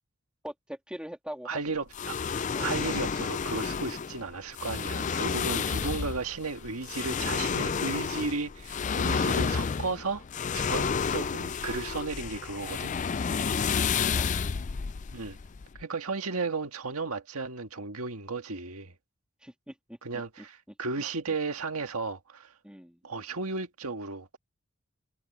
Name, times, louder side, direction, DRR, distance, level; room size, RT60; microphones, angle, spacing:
voice 1, 0.4-1.8 2.5-2.8 13.8-14.4 19.4-20.0 20.4-20.5 22.6-23.0, equal, 5° right, 2.8 m, -43 dB
voice 2, 1.4-2.2 2.6-10.2 10.5-12.9 15.1-15.4 15.8-18.9 20.0-22.5 23.0-24.4, right 3 dB, 90° right, 1.8 m, -34 dB
sound 1, 1.9-15.8, left 6 dB, 35° left, 0.4 m, -30 dB
head